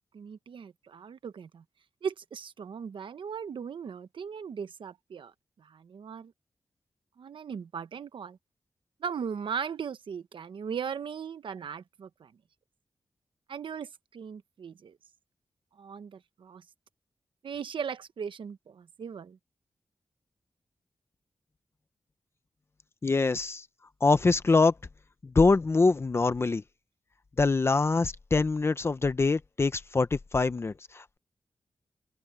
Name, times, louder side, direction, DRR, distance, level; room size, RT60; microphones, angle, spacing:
voice 1, 0.1-1.6 2.0-5.3 5.6-6.3 7.2-8.4 9.0-12.3 13.5-15.0 15.8-16.6 17.4-19.4, right 7 dB, 90° right, 0.9 m, -38 dB
voice 2, 23.0-23.6 24.0-24.7 25.3-26.6 27.4-31.2, left 3 dB, 30° left, 0.7 m, -24 dB
open air
wide cardioid pair, 170°, 8 cm